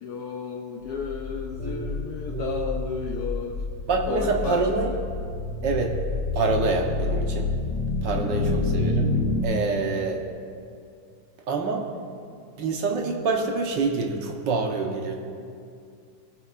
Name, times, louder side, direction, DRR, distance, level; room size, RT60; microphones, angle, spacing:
voice 1, 0.0-3.6 4.1-5.0 5.6-5.8 8.2-8.6 9.8-10.0, left 6 dB, 65° left, 1 dB, 1.1 m, -33 dB
sound 1, 1.0-9.4, left 3 dB, 85° left, 1.5 m, -28 dB
voice 2, 1.6-2.6 3.9-4.9 5.6-5.9 6.3-7.5 8.0-9.1 9.4-10.2 11.5-11.9 12.6-15.1, right 4 dB, 75° right, 2 dB, 1.7 m, -26 dB
23.5 x 8.6 x 2.5 m, 2.4 s
omnidirectional pair, 2.0 m